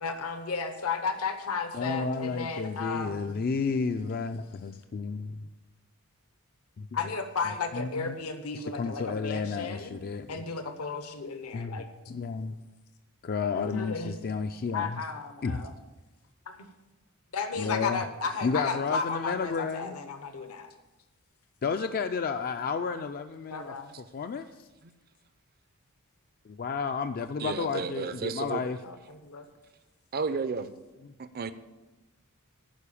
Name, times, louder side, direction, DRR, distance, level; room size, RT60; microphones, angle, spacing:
voice 1, 0.0-3.4 6.9-10.0 10.3-11.9 13.6-14.2 14.7-15.7 16.5-16.7 17.3-20.7 23.5-23.9 28.5-29.5, left 4 dB, 75° left, 8 dB, 0.9 m, -34 dB
voice 2, 1.7-5.5 6.8-6.9 7.7-8.2 8.5-10.4 11.5-12.6 13.2-15.0 15.4-15.7 17.6-18.0 18.4-20.0 21.6-23.7 24.1-24.7 26.5-28.8 31.0-31.1, left 5 dB, 40° left, 8 dB, 0.4 m, -32 dB
voice 3, 27.4-28.6 30.1-30.7 31.3-31.5, right 5 dB, 45° right, 12 dB, 0.5 m, -32 dB
11.5 x 5.0 x 8.5 m, 1.1 s
head